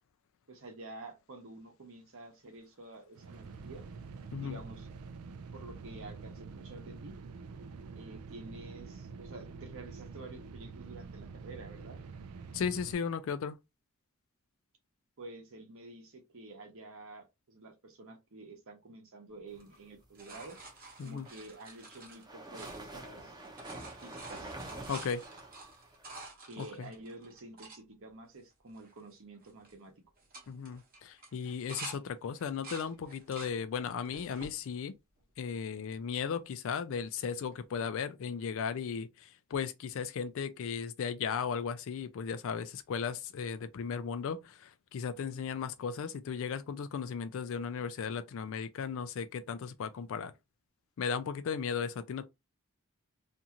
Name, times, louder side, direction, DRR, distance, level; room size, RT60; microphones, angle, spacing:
voice 1, 0.5-3.8 4.4-4.9 5.5-7.1 7.9-12.0 15.2-20.6 21.0-23.4 24.0-24.5 26.4-29.9, right 2 dB, 65° right, 0.9 m, -49 dB
sound 1, 3.1-12.9, right 4 dB, 90° right, 0.4 m, -47 dB
voice 2, 12.5-13.6 21.0-21.3 24.9-25.2 26.6-26.9 30.5-35.0 35.4-50.3 51.0-52.2, left 6 dB, 65° left, 0.4 m, -36 dB
sound 2, 19.5-23.2 23.4-27.8 28.4-28.5 28.7-29.1 29.4-29.8 30.2-32.0 32.4-33.6 34.0-34.6 35.2-35.9 37.5-37.6, right 3 dB, 45° right, 1.0 m, -49 dB
sound 3, 21.0-26.1, right 2 dB, 20° right, 0.6 m, -47 dB
2.7 x 2.4 x 2.8 m
head